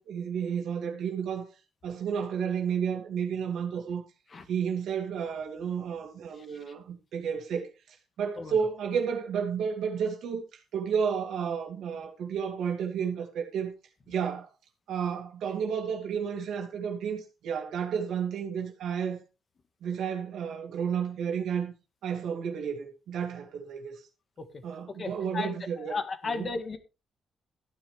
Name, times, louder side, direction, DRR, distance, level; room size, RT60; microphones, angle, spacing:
voice 1, 0.0-1.5 1.8-4.1 4.5-13.7 14.1-14.5 14.9-19.2 19.8-21.7 22.0-24.0 24.6-26.0 26.2-26.5, right 7 dB, 75° right, 2.4 m, -32 dB
voice 2, 6.4-6.7 8.4-8.6 24.4-24.6 25.0-26.8, left 4 dB, 30° left, 1.8 m, -35 dB
14.0 x 10.0 x 3.4 m
cardioid pair, 165°, 0 cm